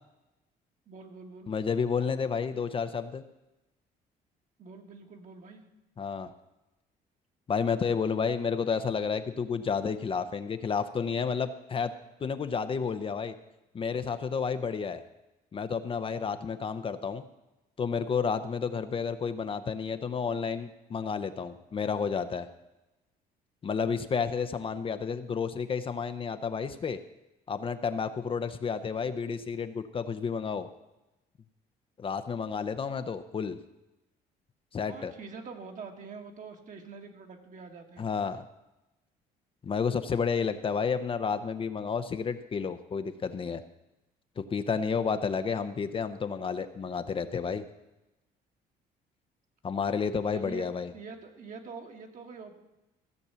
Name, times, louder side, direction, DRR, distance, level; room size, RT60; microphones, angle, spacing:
voice 1, 0.9-1.5 4.6-5.7 34.9-38.1 50.3-50.7 50.9-52.6, right 5 dB, 50° right, 4 dB, 1.8 m, -45 dB
voice 2, 1.5-3.2 6.0-6.3 7.5-11.9 12.2-13.3 13.7-15.0 15.5-17.2 17.8-22.5 23.6-27.0 27.5-30.7 32.0-33.6 34.7-35.1 38.0-38.4 39.6-43.6 44.4-47.6 49.6-50.9, left 6 dB, 30° left, 9 dB, 0.7 m, -31 dB
15.0 x 7.1 x 6.9 m, 0.99 s
cardioid pair, 110°, 17 cm